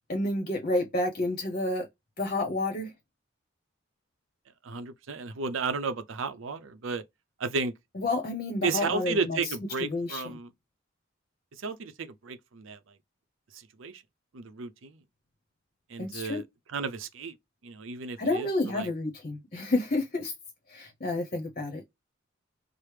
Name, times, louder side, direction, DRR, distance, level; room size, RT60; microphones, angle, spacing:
voice 1, 0.1-1.9 2.2-2.9 8.0-9.4 9.8-10.2 16.0-16.4 18.2-20.3 20.7-21.8, left 2 dB, 40° left, 0.7 m, -30 dB
voice 2, 4.6-7.0 7.4-7.7 8.6-10.5 11.6-12.8 13.5-14.0 14.3-15.0 15.9-16.4 16.7-17.3 17.6-18.9, right 4 dB, 80° right, 0.6 m, -33 dB
4.7 x 2.0 x 3.3 m
head